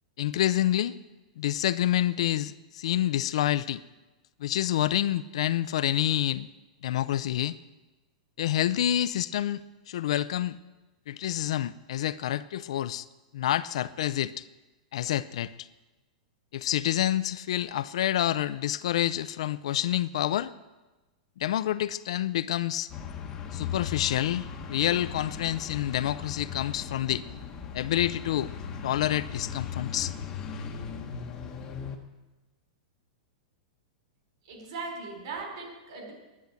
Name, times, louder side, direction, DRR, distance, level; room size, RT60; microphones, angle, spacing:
voice 1, 0.2-0.9 1.4-3.8 4.4-6.5 6.8-7.6 8.4-10.6 11.1-13.1 13.3-14.5 14.9-15.7 16.5-20.5 21.4-22.9 23.5-27.2 27.7-28.5 28.8-30.1, left 12 dB, 55° left, 15 dB, 0.4 m, -28 dB
sound 1, 22.9-32.0, left 7 dB, 15° left, 1.0 m, -38 dB
voice 2, 34.4-36.1, right 4 dB, 45° right, 2 dB, 4.1 m, -38 dB
10.5 x 10.0 x 8.2 m, 1.1 s
supercardioid pair, 180°, 4 cm